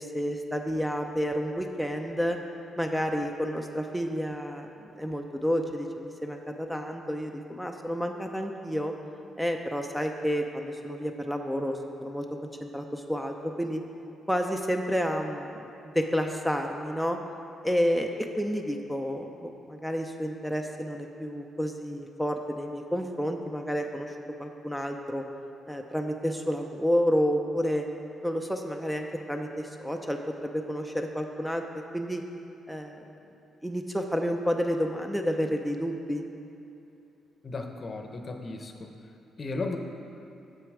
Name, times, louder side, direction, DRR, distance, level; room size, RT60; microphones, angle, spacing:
voice 1, 0.0-2.4 2.8-4.7 4.9-8.9 9.4-12.2 12.6-13.8 14.3-17.2 17.6-18.1 18.4-25.2 25.7-27.8 28.2-31.6 31.9-32.2 32.7-33.0 33.6-36.2, equal, ahead, 3 dB, 0.6 m, -30 dB
voice 2, 37.4-38.9 39.4-39.8, left 3 dB, 45° left, 4 dB, 0.8 m, -35 dB
6.9 x 6.0 x 4.8 m, 2.8 s
supercardioid pair, 60°, 0 cm